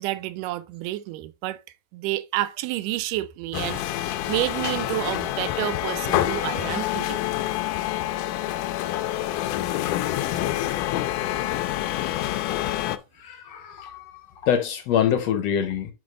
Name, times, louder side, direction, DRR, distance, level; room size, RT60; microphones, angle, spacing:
voice 1, 0.0-1.6 1.9-7.2 10.3-10.4, right 16 dB, 85° right, 2.2 m, -29 dB
sound 1, 3.5-13.0, left 13 dB, 90° left, 2.2 m, -27 dB
voice 2, 13.2-15.9, left 9 dB, 70° left, 1.8 m, -25 dB
6.2 x 5.2 x 3.7 m
omnidirectional pair, 3.7 m